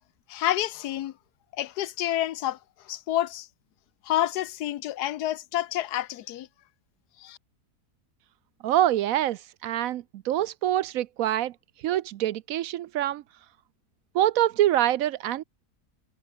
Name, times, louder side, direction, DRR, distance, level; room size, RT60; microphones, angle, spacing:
voice 1, 0.3-1.1 1.6-2.6 2.9-3.5 4.1-6.5 7.2-7.4, left 13 dB, 85° left, 1.3 m, -28 dB
voice 2, 8.6-11.5 11.8-13.2 14.1-15.4, right 12 dB, 70° right, 0.9 m, -25 dB
omnidirectional pair, 1.7 m